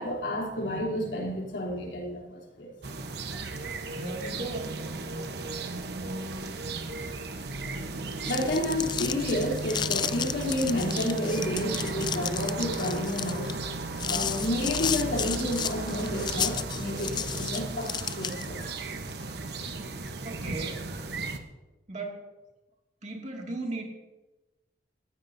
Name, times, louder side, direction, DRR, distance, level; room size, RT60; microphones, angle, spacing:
voice 1, 0.0-2.7 8.2-13.6 14.1-18.6, left 1 dB, 80° left, -2 dB, 3.3 m, -30 dB
sound 1, 2.8-21.4, right 3 dB, 60° right, 1.0 m, -35 dB
voice 2, 3.9-4.8 20.2-20.9 21.9-22.2 23.0-23.8, right 2 dB, 40° right, 0 dB, 2.3 m, -36 dB
sound 2, 8.1-18.6, left 8 dB, 25° left, 0.3 m, -33 dB
19.5 x 15.0 x 2.7 m, 1.1 s
head